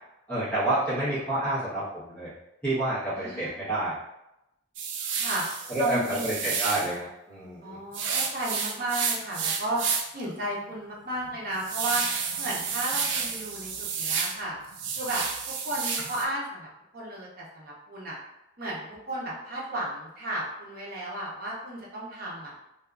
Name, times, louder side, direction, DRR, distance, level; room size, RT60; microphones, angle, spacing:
voice 1, 0.3-2.3 2.6-3.9 5.7-7.8, right 1 dB, 10° left, -11 dB, 1.0 m, -29 dB
voice 2, 3.2-3.7 5.2-5.4 5.8-6.3 7.6-9.8 10.1-12.0 12.4-14.6 14.9-16.7 16.9-18.2 18.6-22.6, right 1 dB, 50° right, -4 dB, 0.7 m, -34 dB
sound 1, 4.8-6.9 7.9-10.2 10.6-10.7 11.2-14.4 14.7-16.2, right 6 dB, 75° right, 0.4 m, -30 dB
2.7 x 2.3 x 2.3 m, 0.87 s
head